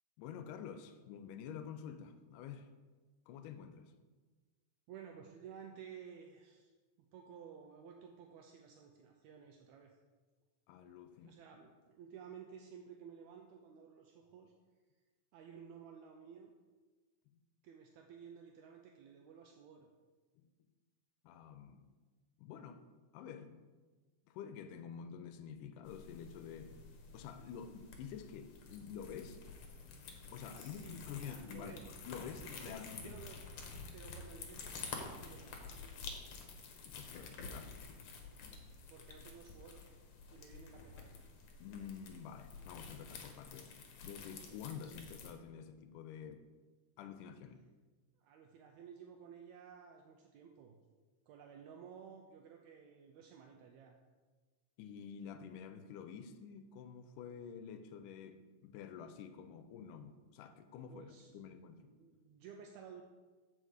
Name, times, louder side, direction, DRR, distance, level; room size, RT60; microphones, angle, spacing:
voice 1, 0.2-2.7 3.3-3.9 10.7-11.3 20.4-20.5 21.2-21.9 22.4-22.8 23.1-23.7 24.3-26.8 27.1-29.4 30.3-31.8 32.1-33.2 33.9-34.0 36.9-37.8 41.6-43.7 44.0-46.4 47.0-47.6 54.8-61.8, left 7 dB, 85° left, 9 dB, 2.1 m, -49 dB
voice 2, 4.9-6.7 7.0-10.0 11.2-14.5 15.3-16.5 17.6-19.9 30.5-31.9 32.4-33.4 33.9-35.7 38.9-39.8 40.3-41.1 48.2-50.8 51.3-54.0 60.9-61.5 61.9-63.0, right 7 dB, 80° right, 2 dB, 1.7 m, -54 dB
sound 1, 25.9-45.3, left 4 dB, 65° left, 2.0 m, -50 dB
7.7 x 5.4 x 4.9 m, 1.3 s
omnidirectional pair, 3.6 m